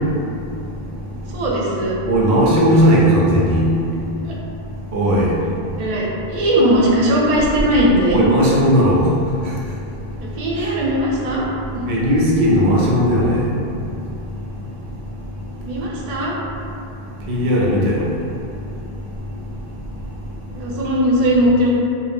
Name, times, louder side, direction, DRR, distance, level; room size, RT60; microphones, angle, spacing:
voice 1, 1.3-2.0 4.2-4.3 5.8-8.2 10.2-11.5 11.7-11.8 15.7-16.3 20.5-21.7, equal, 55° right, -5 dB, 0.4 m, -18 dB
voice 2, 2.1-3.7 4.9-5.3 8.1-9.1 11.9-13.4 17.3-18.1, equal, 90° right, -4 dB, 0.9 m, -16 dB
3.0 x 2.1 x 2.4 m, 2.6 s
omnidirectional pair, 1.1 m